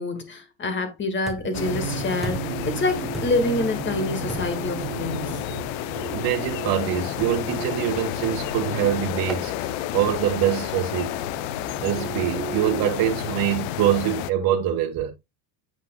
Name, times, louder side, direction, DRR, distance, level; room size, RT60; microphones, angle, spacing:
voice 1, 0.0-5.4, left 2 dB, 20° left, 1.7 m, -27 dB
sound 1, 1.3-1.7 2.2-2.7 3.1-3.6 4.3-4.7 5.4-5.7 7.2-7.5 8.2-8.6 9.3-9.5 10.2-10.5, right 1 dB, ahead, 1.0 m, -36 dB
sound 2, 1.4-13.2, right 10 dB, 85° right, 1.1 m, -35 dB
sound 3, 1.5-14.3, left 14 dB, 80° left, 0.7 m, -31 dB
voice 2, 6.1-11.2 11.8-15.1, right 10 dB, 45° right, 1.4 m, -24 dB
8.6 x 5.7 x 2.2 m
supercardioid pair, 120°, 50 cm